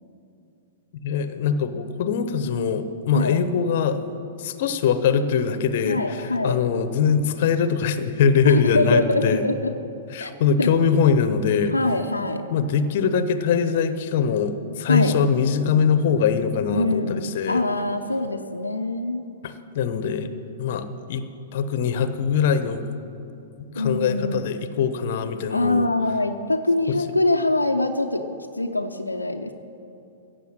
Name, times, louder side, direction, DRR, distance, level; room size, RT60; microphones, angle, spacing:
voice 1, 1.0-4.0 4.4-9.4 10.1-11.7 12.5-17.6 19.4-20.3 20.6-21.2 21.5-22.8 23.7-25.9, left 6 dB, 50° left, 11 dB, 0.9 m, -22 dB
voice 2, 5.8-6.6 8.4-9.7 10.2-10.3 10.6-10.7 11.7-12.4 14.9-15.2 16.7-19.3 23.7-24.4 25.5-28.3 28.6-29.5, left 2 dB, 85° left, 4 dB, 0.7 m, -24 dB
15.5 x 7.0 x 8.9 m, 2.7 s
figure-of-eight pair, 105°, 0 cm